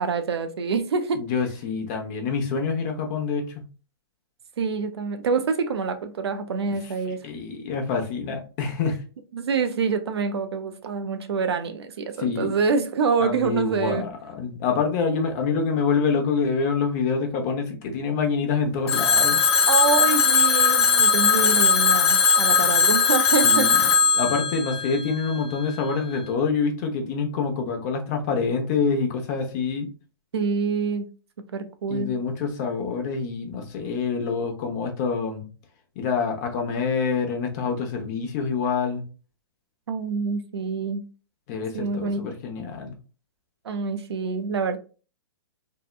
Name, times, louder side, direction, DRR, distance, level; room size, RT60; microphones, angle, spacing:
voice 1, 0.0-1.2 4.6-7.2 9.3-14.1 19.7-24.0 30.3-31.1 31.5-32.1 39.9-41.0 41.7-42.2 43.6-44.8, right 5 dB, 75° right, 0.5 m, -26 dB
voice 2, 1.2-3.6 7.0-9.0 12.2-12.6 13.2-19.4 23.4-23.8 24.1-29.9 31.9-35.4 36.0-39.0 41.5-42.9, left 5 dB, 40° left, 0.7 m, -26 dB
Telephone, 18.9-25.7, left 5 dB, 80° left, 0.5 m, -19 dB
2.7 x 2.2 x 2.4 m
hypercardioid pair, 125°, 14 cm